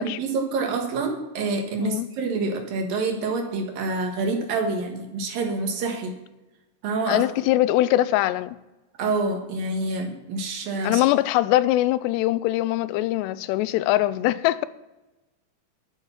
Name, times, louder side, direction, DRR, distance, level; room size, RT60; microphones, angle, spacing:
voice 1, 0.0-6.1 6.8-7.3 9.0-11.0, right 3 dB, 65° right, 3.1 m, -27 dB
voice 2, 7.1-8.6 10.8-14.7, left 15 dB, 85° left, 2.7 m, -22 dB
11.5 x 10.0 x 5.8 m
omnidirectional pair, 4.8 m